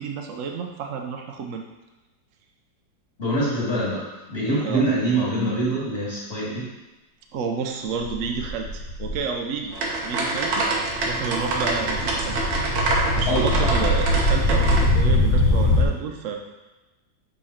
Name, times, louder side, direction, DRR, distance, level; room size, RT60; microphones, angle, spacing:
voice 1, 0.0-1.6 4.6-4.8 7.3-10.7 11.1-12.5 13.2-16.4, right 5 dB, 60° right, 3 dB, 0.8 m, -30 dB
voice 2, 3.2-6.7 13.3-13.8, right 1 dB, 35° left, -11 dB, 2.0 m, -24 dB
sound 1, 8.0-9.2 9.8-10.0 10.3-15.8, left 1 dB, 70° left, 1.6 m, -22 dB
sound 2, 9.7-14.8, right 2 dB, 85° right, 1.7 m, -26 dB
6.9 x 3.8 x 4.3 m, 1.1 s
omnidirectional pair, 1.9 m